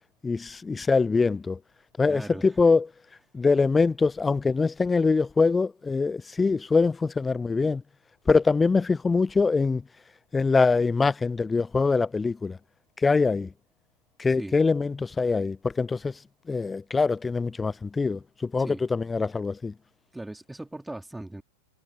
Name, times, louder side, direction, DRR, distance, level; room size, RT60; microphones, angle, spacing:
voice 1, 0.2-1.6 2.0-2.9 3.3-7.8 8.3-9.8 10.3-12.6 13.0-13.5 14.2-16.1 16.5-19.7, left 4 dB, 10° left, 0.8 m, -23 dB
voice 2, 2.1-2.5 14.4-14.6 18.6-18.8 20.1-21.4, right 1 dB, 5° right, 3.6 m, -39 dB
figure-of-eight pair, 90°, 0 cm